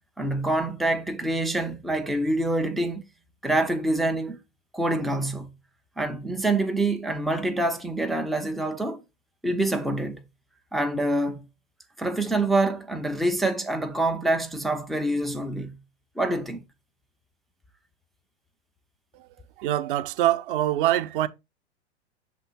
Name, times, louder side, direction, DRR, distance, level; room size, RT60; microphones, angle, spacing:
voice 1, 0.2-3.0 3.4-4.4 4.7-5.5 6.0-9.0 9.4-10.2 10.7-11.4 12.0-15.8 16.2-16.6, right 2 dB, ahead, 0.3 m, -26 dB
voice 2, 19.6-21.3, right 13 dB, 50° right, 0.7 m, -24 dB
6.7 x 3.6 x 4.0 m
figure-of-eight pair, 100°, 33 cm